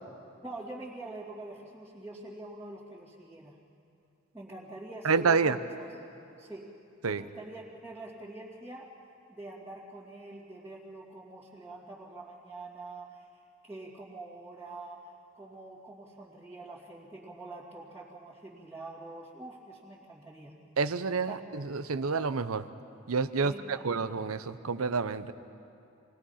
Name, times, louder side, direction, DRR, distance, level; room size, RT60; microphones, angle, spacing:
voice 1, 0.4-3.6 4.3-5.9 6.4-6.7 7.0-8.9 9.3-13.3 13.6-20.5 21.2-21.4 23.4-24.0, right 2 dB, 10° right, -10 dB, 2.5 m, -45 dB
voice 2, 5.0-5.6 7.0-7.2 20.8-22.6 23.1-25.3, right 5 dB, 85° right, 13 dB, 0.8 m, -28 dB
27.0 x 20.5 x 5.7 m, 2.7 s
head